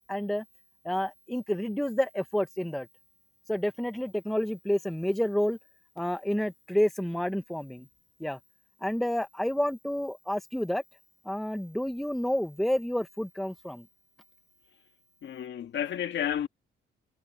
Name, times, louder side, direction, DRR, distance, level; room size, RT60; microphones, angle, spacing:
voice 1, 0.1-0.4 0.8-2.9 3.5-5.6 6.0-7.9 8.2-8.4 8.8-10.8 11.2-13.8, equal, ahead, 1.2 m, -29 dB
voice 2, 15.2-16.5, left 9 dB, 65° left, 2.0 m, -31 dB
cardioid pair, 90°, 20 cm